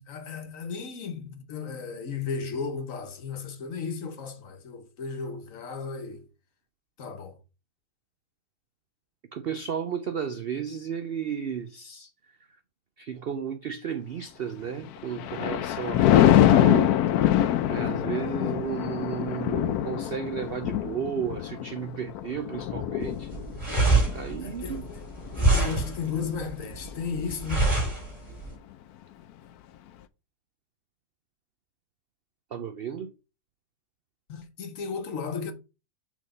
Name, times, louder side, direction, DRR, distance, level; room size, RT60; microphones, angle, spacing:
voice 1, 0.0-6.3 7.0-7.4 21.8-22.0 24.1-24.8 25.4-27.6 34.3-35.5, left 5 dB, 55° left, 1.3 m, -35 dB
voice 2, 9.3-12.1 13.0-16.9 17.7-23.3 24.1-24.8 32.5-33.1, right 8 dB, 80° right, 0.5 m, -33 dB
Thunder, 14.8-26.3 26.8-27.1, left 12 dB, 75° left, 1.0 m, -24 dB
sound 1, 23.0-28.5, right 2 dB, 25° right, 3.4 m, -25 dB
6.1 x 3.7 x 5.1 m
omnidirectional pair, 1.7 m